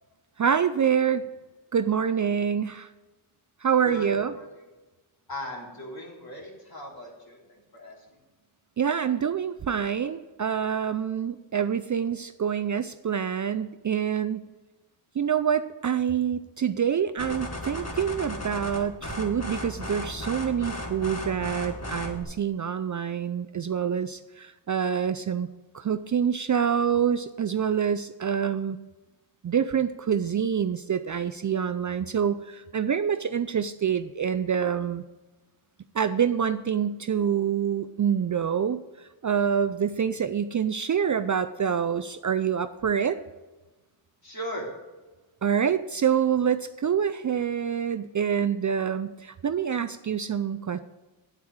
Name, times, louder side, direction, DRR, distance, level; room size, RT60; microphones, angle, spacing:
voice 1, 0.4-1.2 1.7-2.9 3.6-4.3 8.8-14.5 15.2-25.5 25.7-28.8 29.4-35.0 35.9-38.8 39.2-43.2 45.4-50.8, right 8 dB, 40° right, 10 dB, 0.4 m, -26 dB
voice 2, 3.8-4.6 5.3-8.2 44.2-44.7, equal, 50° left, -2 dB, 3.4 m, -37 dB
sound 1, 17.2-22.2, left 1 dB, 30° left, 1.8 m, -35 dB
9.0 x 8.4 x 4.7 m, 1.2 s
wide cardioid pair, 90°, 48 cm